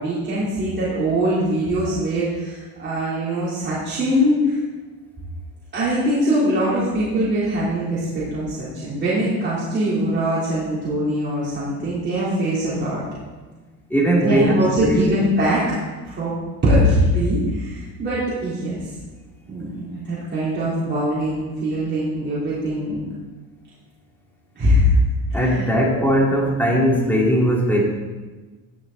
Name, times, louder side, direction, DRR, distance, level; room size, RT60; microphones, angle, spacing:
voice 1, 0.0-4.6 5.7-13.0 14.2-15.6 16.0-16.4 16.6-18.8 19.5-23.0 24.6-24.9 25.3-25.4, equal, 30° right, -10 dB, 3.6 m, -22 dB
voice 2, 13.9-15.1 25.3-27.8, equal, 5° left, -3 dB, 2.6 m, -19 dB
15.5 x 7.2 x 4.0 m, 1.3 s
cardioid pair, 130°, 36 cm